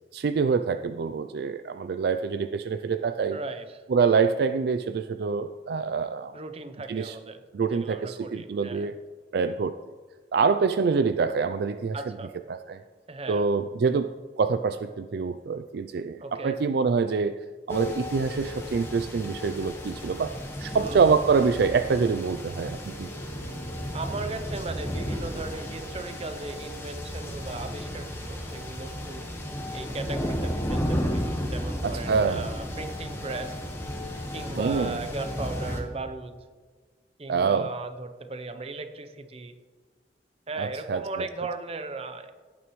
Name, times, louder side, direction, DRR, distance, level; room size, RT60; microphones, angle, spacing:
voice 1, 0.1-3.4 3.9-6.3 6.9-7.2 7.5-8.9 9.3-9.8 10.3-12.1 12.5-12.8 13.3-14.1 14.4-17.4 17.7-20.3 20.6-23.1 31.8-32.5 34.6-35.0 37.3-37.7 40.6-41.3, right 5 dB, 60° right, 10 dB, 0.4 m, -25 dB
voice 2, 3.3-3.8 6.3-7.4 7.7-8.9 11.9-12.3 13.1-13.4 16.2-16.6 20.8-21.2 23.9-29.3 29.7-33.6 34.3-36.4 37.2-39.5 40.5-42.3, right 3 dB, 35° right, 8 dB, 0.7 m, -37 dB
sound 1, 17.7-35.8, equal, 15° left, 1.3 m, -33 dB
17.0 x 9.3 x 3.2 m, 1.4 s
head